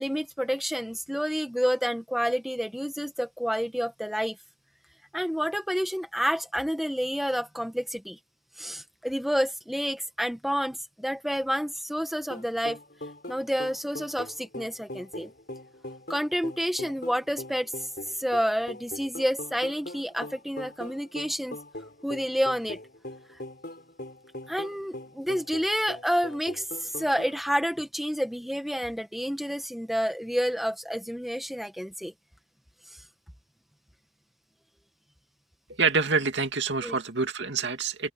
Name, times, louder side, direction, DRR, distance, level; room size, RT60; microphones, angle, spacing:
voice 1, 0.0-4.4 5.1-8.2 8.6-12.8 13.3-15.3 16.1-17.9 18.1-21.6 22.0-22.8 24.5-32.1 36.8-37.0, equal, ahead, 1.5 m, -29 dB
sound 1, 12.3-27.4, left 1 dB, 50° left, 5.4 m, -41 dB
voice 2, 35.8-38.1, right 4 dB, 75° right, 2.5 m, -26 dB
open air
head